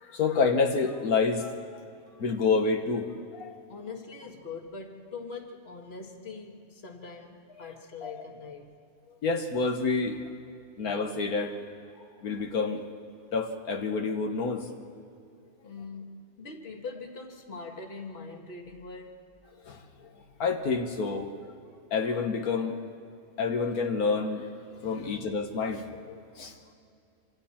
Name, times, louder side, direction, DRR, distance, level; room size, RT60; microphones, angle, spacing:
voice 1, 0.0-1.5 2.2-3.6 8.0-8.2 9.1-10.2 10.8-11.6 12.0-12.9 13.3-14.7 19.6-20.1 20.4-21.4 21.9-22.8 23.4-24.5 24.8-26.5, left 4 dB, 85° left, 1.7 m, -28 dB
voice 2, 3.7-8.8 15.6-19.2 24.8-25.2, left 4 dB, 45° left, 2.0 m, -42 dB
27.5 x 25.5 x 4.4 m
omnidirectional pair, 1.5 m